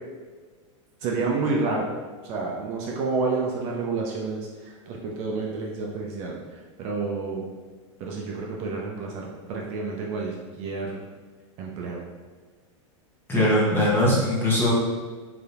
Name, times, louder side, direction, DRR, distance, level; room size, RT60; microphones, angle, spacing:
voice 1, 1.0-1.9 2.2-6.4 6.8-7.5 8.0-11.0 11.6-12.0, right 3 dB, 40° right, -1 dB, 0.5 m, -29 dB
voice 2, 13.3-14.7, left 1 dB, 15° left, -5 dB, 0.8 m, -21 dB
3.3 x 2.8 x 2.4 m, 1.4 s
supercardioid pair, 135°, 16 cm